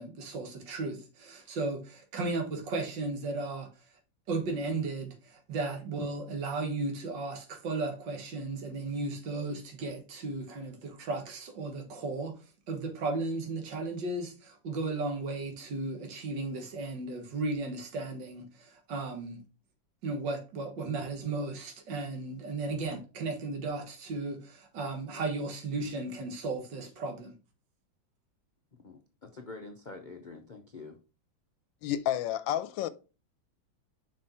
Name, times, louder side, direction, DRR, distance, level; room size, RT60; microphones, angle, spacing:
voice 1, 0.0-3.7 4.3-19.4 20.0-27.3, right 3 dB, 70° right, 2.1 m, -35 dB
voice 2, 28.8-31.0, left 3 dB, 55° left, 0.5 m, -46 dB
voice 3, 31.8-32.9, left 11 dB, 85° left, 1.3 m, -30 dB
6.1 x 4.8 x 4.2 m
omnidirectional pair, 2.0 m